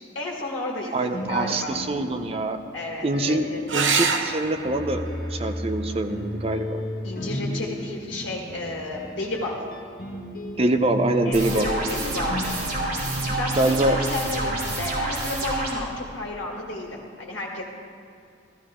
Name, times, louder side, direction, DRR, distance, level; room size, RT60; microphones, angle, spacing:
voice 1, 0.1-1.8 2.7-3.9 7.0-9.6 11.2-12.9 13.3-17.6, left 2 dB, 85° left, -2 dB, 1.9 m, -33 dB
voice 2, 0.9-2.6 3.0-6.8 10.6-11.7 13.5-14.0, right 1 dB, 30° right, 6 dB, 0.7 m, -24 dB
sound 1, 1.1-2.6 3.1-15.3, equal, 50° left, 1.9 m, -34 dB
sound 2, 3.7-8.7 10.6-11.2 14.7-14.8 15.1-15.2, right 5 dB, 90° right, 0.8 m, -31 dB
sound 3, 11.3-15.7, right 2 dB, 50° right, 2.9 m, -28 dB
14.5 x 14.0 x 3.7 m, 2.4 s
head